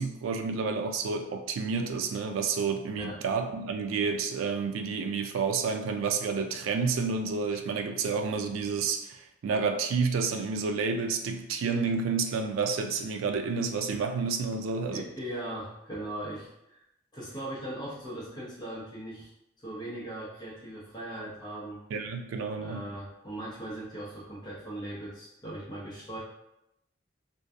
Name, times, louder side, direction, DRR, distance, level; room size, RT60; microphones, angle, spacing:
voice 1, 0.0-15.1 21.9-22.9, right 5 dB, 90° right, 5 dB, 0.3 m, -30 dB
voice 2, 14.9-16.8 17.1-19.3 19.6-21.8 22.6-26.2, right 1 dB, 20° left, -7 dB, 0.7 m, -39 dB
2.6 x 2.2 x 2.3 m, 0.84 s
head